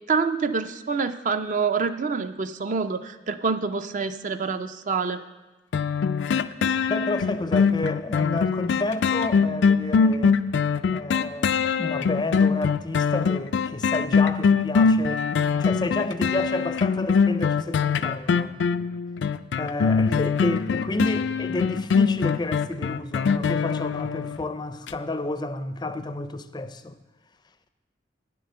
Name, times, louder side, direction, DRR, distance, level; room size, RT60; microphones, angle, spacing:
voice 1, 0.1-5.2, right 5 dB, 45° right, 0.5 m, -26 dB
sound 1, 5.7-24.4 24.9-25.0, left 6 dB, 90° left, 0.4 m, -22 dB
voice 2, 6.9-10.5 10.9-15.3 15.6-18.6 19.6-27.0, left 2 dB, 25° left, 0.4 m, -30 dB
9.7 x 7.7 x 6.7 m
head